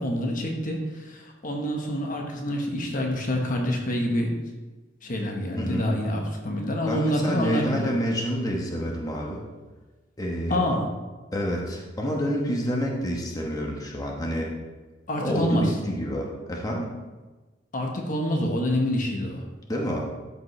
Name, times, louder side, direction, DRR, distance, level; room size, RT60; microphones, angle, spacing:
voice 1, 0.0-4.4 5.0-7.9 10.5-10.8 15.1-15.7 17.7-19.4, equal, 45° left, 1 dB, 1.1 m, -27 dB
voice 2, 5.6-5.9 6.9-9.4 10.2-10.6 11.3-14.5 15.2-16.9 19.7-20.0, equal, 20° left, -2 dB, 1.1 m, -28 dB
12.5 x 5.3 x 3.2 m, 1.2 s
head